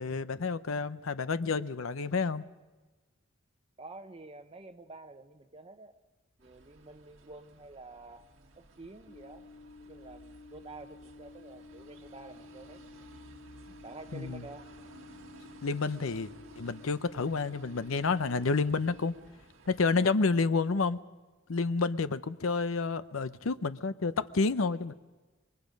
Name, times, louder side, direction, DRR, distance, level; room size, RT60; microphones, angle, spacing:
voice 1, 0.0-2.4 14.1-14.4 15.6-19.1 19.7-21.0 21.5-24.9, left 4 dB, 80° left, 0.7 m, -29 dB
voice 2, 3.8-6.0 6.4-8.3 8.6-9.5 9.9-13.1 13.7-14.7, right 2 dB, 30° right, 0.9 m, -49 dB
sound 1, 6.4-19.9, right 2 dB, 75° right, 1.9 m, -56 dB
sound 2, 9.1-19.1, left 3 dB, 25° left, 0.7 m, -52 dB
27.5 x 23.0 x 5.3 m
head